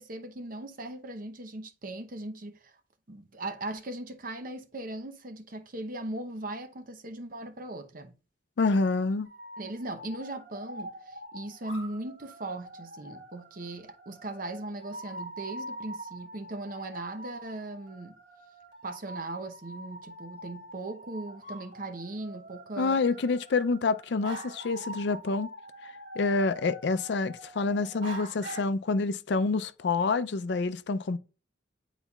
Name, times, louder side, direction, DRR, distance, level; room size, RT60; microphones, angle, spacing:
voice 1, 0.0-2.7 3.1-8.2 9.6-18.2 18.8-23.0, right 2 dB, 50° right, 0.8 m, -39 dB
voice 2, 8.6-9.3 22.8-25.5 26.2-31.2, left 3 dB, 65° left, 0.4 m, -27 dB
sound 1, 9.2-28.6, right 1 dB, 70° right, 2.3 m, -45 dB
9.9 x 4.0 x 2.3 m
head